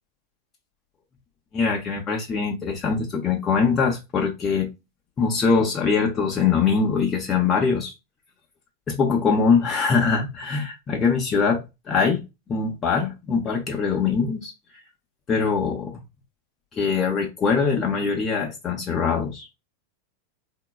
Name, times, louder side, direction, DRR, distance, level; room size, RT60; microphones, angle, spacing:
voice 1, 1.5-4.7 5.2-7.9 8.9-12.2 12.5-14.5 15.3-16.0 16.8-19.5, left 5 dB, 25° left, 0.7 m, -22 dB
3.7 x 2.3 x 2.2 m
figure-of-eight pair, 90°, 0 cm